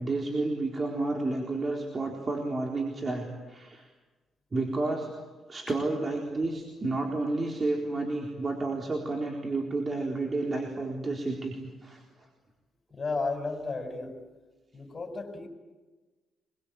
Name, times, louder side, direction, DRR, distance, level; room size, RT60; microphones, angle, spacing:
voice 1, 0.0-3.9 4.5-5.1 5.5-12.0, right 2 dB, 30° right, 0 dB, 4.1 m, -31 dB
voice 2, 12.9-14.2 14.7-15.5, left 3 dB, 30° left, 4 dB, 6.4 m, -33 dB
25.5 x 22.5 x 9.0 m, 1.2 s
cardioid pair, 110°, 0 cm